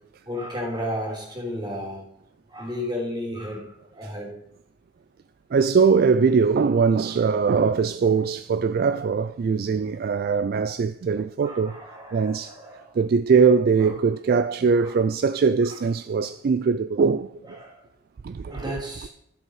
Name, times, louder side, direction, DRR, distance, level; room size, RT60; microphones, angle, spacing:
voice 1, 0.2-2.0 2.5-4.3 11.4-13.0 13.8-13.9 14.8-15.0 15.7-15.8 17.4-17.8 18.5-19.1, equal, 20° right, 3.0 m, -33 dB
voice 2, 5.5-11.8 12.1-12.6 12.9-17.6 18.2-18.8, right 5 dB, 50° right, 0.3 m, -21 dB
13.0 x 7.8 x 4.8 m
head